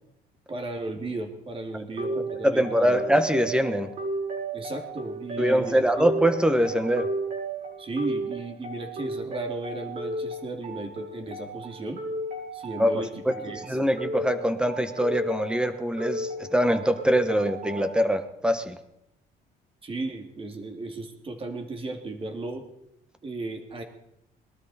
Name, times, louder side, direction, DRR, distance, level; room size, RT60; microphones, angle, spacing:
voice 1, 0.5-3.0 4.5-6.1 7.8-12.0 12.5-13.8 19.8-22.6 23.2-23.8, right 2 dB, 35° right, 5 dB, 2.5 m, -35 dB
sound 1, 2.0-18.0, right 2 dB, 50° right, 5.3 m, -35 dB
voice 2, 2.1-3.9 5.4-7.1 12.8-12.9 13.3-13.4 13.7-18.7, equal, 5° right, 9 dB, 1.3 m, -23 dB
20.0 x 12.5 x 4.2 m, 0.80 s
cardioid pair, 110°, 17 cm